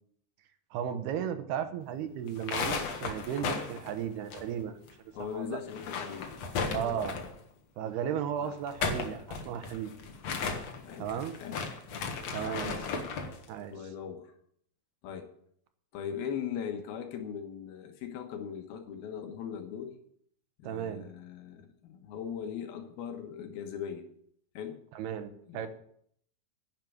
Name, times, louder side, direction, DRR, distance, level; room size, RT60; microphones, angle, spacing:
voice 1, 0.7-4.8 5.2-5.6 6.7-7.2 7.8-9.9 11.0-11.3 12.3-12.8 13.5-13.7 20.6-21.0 25.0-25.7, right 9 dB, 80° right, 9 dB, 3.1 m, -35 dB
sound 1, 2.3-4.9 5.2-5.3 5.6-7.4 8.5-13.4, left 5 dB, 55° left, 2.2 m, -35 dB
voice 2, 5.1-7.0 8.4-8.5 10.8-11.6 12.4-12.6 13.3-13.4 13.7-14.3 15.0-15.3 15.9-19.9 20.6-24.1 24.5-24.8 25.5-25.7, left 8 dB, 75° left, 5 dB, 3.1 m, -40 dB
10.5 x 7.5 x 9.4 m, 0.67 s
omnidirectional pair, 4.5 m